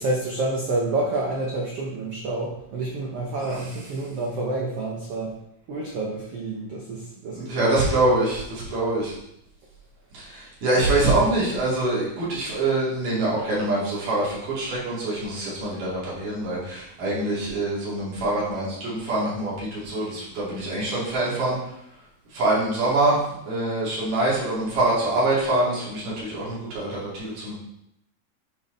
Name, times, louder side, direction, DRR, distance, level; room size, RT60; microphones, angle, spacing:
voice 1, 0.0-5.3 5.7-7.8, right 2 dB, 90° right, -2 dB, 1.3 m, -28 dB
voice 2, 7.3-9.1 10.1-21.6 22.3-23.2 23.5-27.5, right 2 dB, 65° right, -7 dB, 4.1 m, -24 dB
9.1 x 4.5 x 3.9 m, 0.80 s
omnidirectional pair, 4.1 m